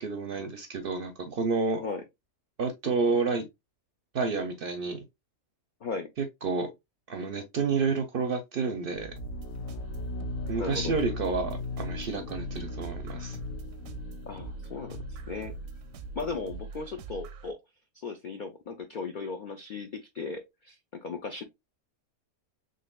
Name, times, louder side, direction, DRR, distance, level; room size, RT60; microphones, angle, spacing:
voice 1, 0.0-1.8 2.6-3.4 4.1-5.0 6.2-6.7 7.1-9.1 10.5-13.4, right 4 dB, 60° right, 0.6 m, -30 dB
sound 1, 9.0-16.6, left 2 dB, 85° left, 1.0 m, -39 dB
sound 2, 9.2-17.5, right 4 dB, 85° right, 1.0 m, -43 dB
voice 2, 10.6-10.9 14.3-15.5 16.2-17.6 17.9-21.4, left 4 dB, 70° left, 0.4 m, -37 dB
4.0 x 3.2 x 2.2 m
omnidirectional pair, 1.4 m